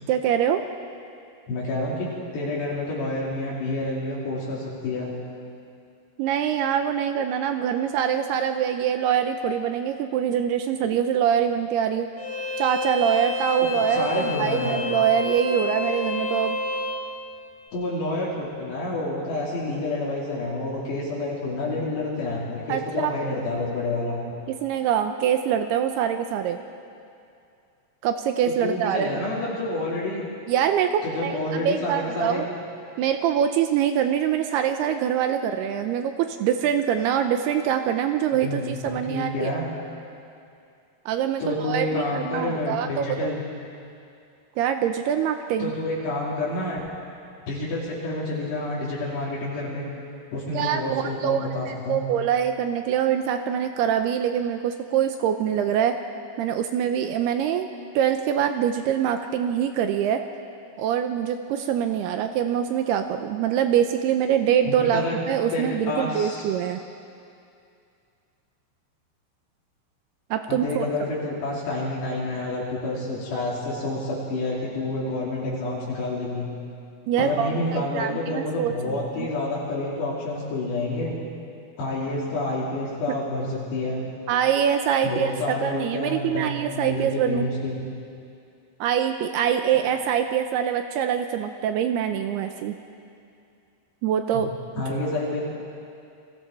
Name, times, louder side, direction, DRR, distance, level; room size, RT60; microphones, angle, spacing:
voice 1, 0.1-0.6 6.2-12.1 12.6-16.6 22.7-23.1 24.6-26.6 28.0-29.1 30.5-32.4 33.0-39.5 41.1-43.3 44.6-45.7 50.5-56.0 56.4-57.7 58.0-60.2 60.8-66.8 70.3-70.9 77.1-79.3 84.3-87.4 88.8-92.8 94.0-94.5 94.9-95.0, right 9 dB, 80° right, 7 dB, 2.5 m, -24 dB
voice 2, 1.5-5.1 13.9-14.8 17.7-24.2 28.4-30.2 31.0-32.5 38.4-39.6 41.4-43.4 45.6-46.8 47.5-49.9 50.3-52.0 64.7-65.2 65.5-66.5 70.5-76.5 77.2-81.2 81.8-84.0 85.0-87.8 94.3-94.4 94.8-95.4, left 2 dB, 70° left, -6 dB, 4.9 m, -28 dB
Bowed string instrument, 12.2-17.0, left 3 dB, 45° left, 4.5 m, -29 dB
29.0 x 21.5 x 4.4 m, 2.4 s
omnidirectional pair, 5.1 m